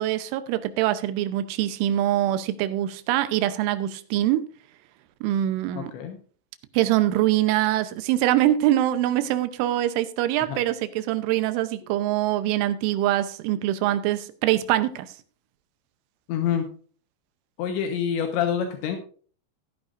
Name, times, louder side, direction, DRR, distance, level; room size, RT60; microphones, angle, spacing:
voice 1, 0.0-4.5 5.2-5.9 6.7-15.1, right 13 dB, 85° right, 3.3 m, -24 dB
voice 2, 5.8-6.2 10.4-10.6 16.3-16.7 17.6-19.0, left 8 dB, 75° left, 3.3 m, -26 dB
14.0 x 11.0 x 2.6 m
omnidirectional pair, 5.4 m